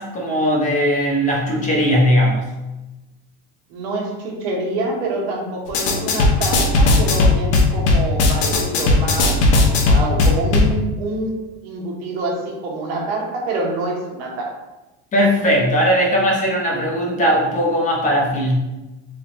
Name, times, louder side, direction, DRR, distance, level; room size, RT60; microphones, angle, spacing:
voice 1, 0.0-2.5 15.1-18.6, equal, 25° left, -3 dB, 0.8 m, -18 dB
voice 2, 3.7-9.4 9.9-14.6, right 2 dB, 75° right, -1 dB, 1.1 m, -26 dB
sound 1, 5.7-10.7, left 2 dB, 80° left, 0.8 m, -16 dB
3.2 x 2.3 x 3.9 m, 1.0 s
supercardioid pair, 145°, 31 cm